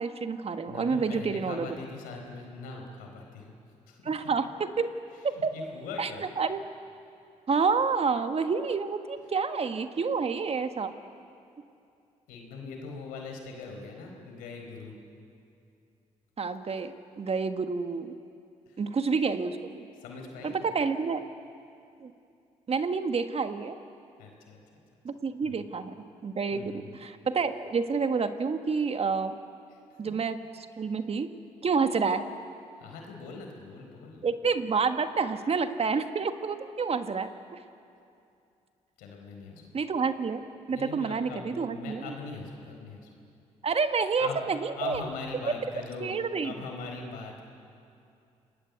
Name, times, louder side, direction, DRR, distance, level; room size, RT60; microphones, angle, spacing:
voice 1, 0.0-1.7 4.0-4.9 5.4-5.5 6.0-6.1 6.4-6.6 7.5-10.9 16.4-18.1 18.8-19.9 20.6-21.2 22.0-22.1 22.7-23.8 25.0-29.3 30.0-31.3 31.6-32.3 34.2-37.6 39.7-40.4 40.7-42.1 43.6-45.0 46.0-46.5, right 5 dB, 45° right, 8 dB, 1.6 m, -29 dB
voice 2, 0.7-3.5 3.9-4.0 5.1-6.2 9.9-10.1 12.3-15.0 18.7-18.9 20.0-20.7 24.2-24.6 25.2-25.7 26.5-27.0 29.7-30.0 30.8-30.9 32.8-34.2 39.0-39.7 40.7-43.1 44.2-44.4 44.8-46.1 46.4-47.4, left 4 dB, 85° left, 2 dB, 4.4 m, -42 dB
28.5 x 20.0 x 8.3 m, 2.5 s
supercardioid pair, 55°, 14 cm